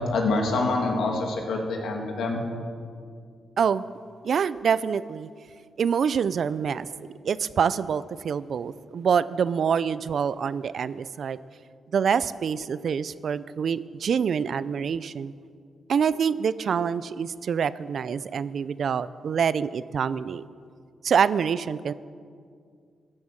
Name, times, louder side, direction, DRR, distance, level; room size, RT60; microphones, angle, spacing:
voice 1, 0.1-2.4, left 3 dB, 80° left, 1 dB, 2.5 m, -26 dB
voice 2, 4.2-5.3 5.8-6.9 7.2-11.4 11.9-15.3 15.9-20.4 21.0-21.9, right 7 dB, 60° right, 17 dB, 0.5 m, -26 dB
14.5 x 11.0 x 7.5 m, 2.2 s
cardioid pair, 105°, 0 cm